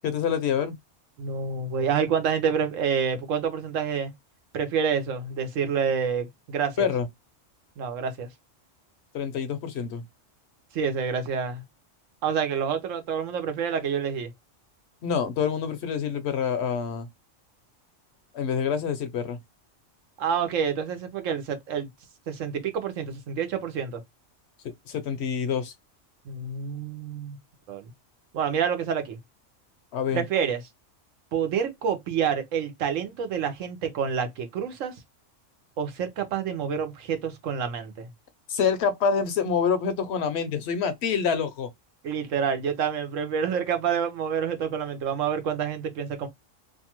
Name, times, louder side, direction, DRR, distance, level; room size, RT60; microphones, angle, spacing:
voice 1, 0.0-0.8 6.8-7.1 9.1-10.0 15.0-17.1 18.3-19.4 24.6-25.7 29.9-30.2 38.5-41.7, left 6 dB, 65° left, 0.8 m, -26 dB
voice 2, 1.2-4.1 4.5-6.9 7.8-8.3 10.7-11.6 12.2-14.3 20.2-21.9 22.3-24.0 26.3-27.4 27.7-27.9 28.3-29.2 30.1-30.6 31.3-35.0 35.8-38.1 42.0-46.3, right 7 dB, 85° right, 1.1 m, -28 dB
2.6 x 2.3 x 2.9 m
omnidirectional pair, 1.3 m